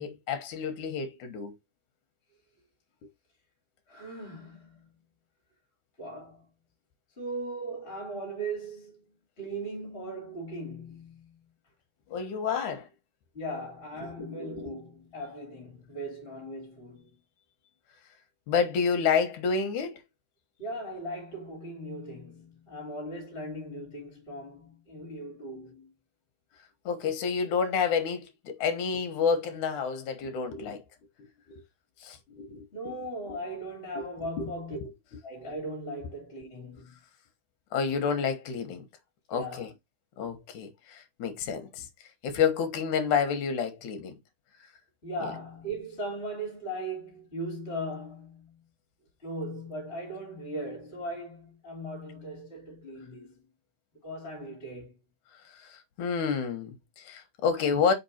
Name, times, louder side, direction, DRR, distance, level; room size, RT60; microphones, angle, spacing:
voice 1, 0.0-1.5 12.1-12.9 14.0-14.7 18.5-20.0 26.9-30.8 31.2-31.6 32.0-32.9 33.3-33.4 33.9-34.1 34.4-34.9 37.7-38.8 39.3-39.7 40.2-41.9 42.2-44.2 45.2-45.3 55.5-57.9, left 6 dB, 60° left, 2.4 m, -29 dB
voice 2, 3.9-4.9 6.0-6.5 7.2-11.4 13.3-17.1 20.6-25.9 32.7-34.8 35.2-36.9 39.3-39.7 45.0-48.6 49.2-53.4 54.0-55.0, right 1 dB, 15° left, 3.1 m, -38 dB
5.7 x 4.3 x 4.3 m
omnidirectional pair, 4.6 m